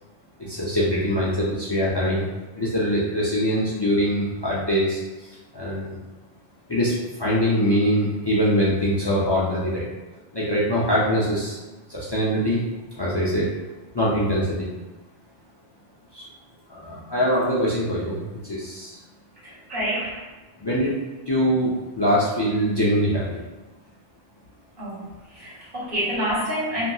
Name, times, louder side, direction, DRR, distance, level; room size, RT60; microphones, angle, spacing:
voice 1, 0.4-2.3 2.5-6.0 6.7-9.9 10.3-11.6 11.9-12.6 13.0-13.5 13.9-14.7 16.1-16.2 16.7-19.0 20.6-20.9 21.3-23.4, equal, 45° left, -7 dB, 0.3 m, -23 dB
voice 2, 19.4-20.2 24.8-26.9, equal, 60° right, -10 dB, 1.4 m, -28 dB
2.9 x 2.7 x 2.3 m, 1.2 s
omnidirectional pair, 1.1 m